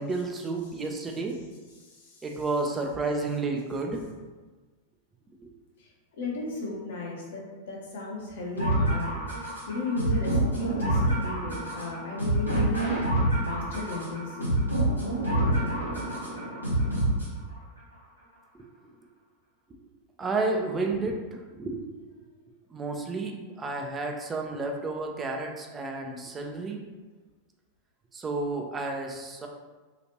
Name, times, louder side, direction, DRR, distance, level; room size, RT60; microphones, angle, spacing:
voice 1, 0.0-1.4 2.2-4.1 5.4-5.5 18.5-18.7 19.0-19.1 20.2-21.8 22.7-26.8 28.1-29.5, right 3 dB, 20° right, 2 dB, 0.4 m, -31 dB
voice 2, 1.8-2.2 5.8-5.9 6.2-14.5, left 1 dB, 55° left, -3 dB, 0.8 m, -35 dB
sound 1, 8.6-17.6, right 1 dB, 85° right, 0.9 m, -27 dB
2.9 x 2.4 x 2.8 m, 1.3 s
figure-of-eight pair, 90°, 0 cm